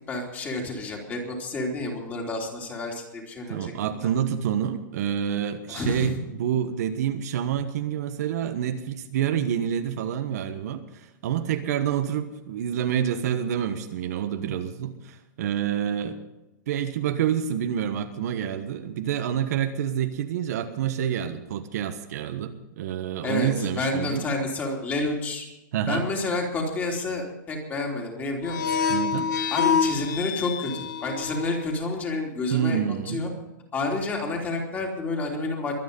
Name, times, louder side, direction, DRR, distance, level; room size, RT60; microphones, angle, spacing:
voice 1, 0.1-3.7 4.0-4.1 5.7-6.2 23.2-25.5 25.9-28.8 29.5-32.8 33.1-33.3 33.7-35.7, left 2 dB, 15° left, 1 dB, 3.4 m, -29 dB
voice 2, 3.5-16.2 16.7-24.2 25.7-26.0 28.9-29.3 32.5-33.2, right 9 dB, 55° right, 7 dB, 1.4 m, -28 dB
sound 1, 28.4-31.7, left 7 dB, 65° left, 2.7 m, -26 dB
23.0 x 9.4 x 5.4 m, 0.96 s
hypercardioid pair, 160°, 10 cm